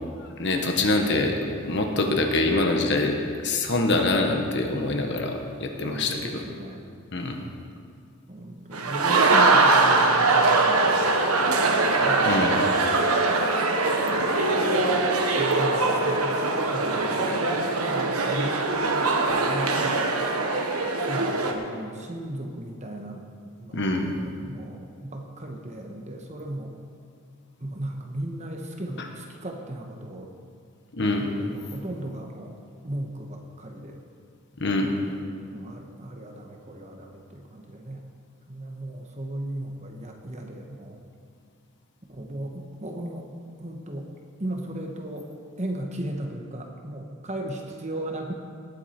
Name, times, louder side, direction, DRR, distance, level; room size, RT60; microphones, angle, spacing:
voice 1, 0.4-1.4 1.6-6.4 7.1-7.4 12.2-12.7 23.7-24.1 30.9-31.3 34.6-34.9, left 2 dB, 55° left, 3 dB, 1.3 m, -25 dB
voice 2, 2.0-2.4 5.7-6.9 8.3-12.2 13.9-14.3 14.6-20.0 21.0-23.3 23.6-23.9 24.2-26.7 27.6-30.3 31.0-32.6 32.8-34.0 35.1-38.0 38.5-41.0 42.1-43.3 43.6-44.1 44.4-45.3 45.6-48.3, right 1 dB, 30° right, 2 dB, 1.2 m, -36 dB
sound 1, 8.7-21.5, right 3 dB, 90° right, 1.2 m, -22 dB
19.0 x 8.2 x 4.4 m, 2.2 s
head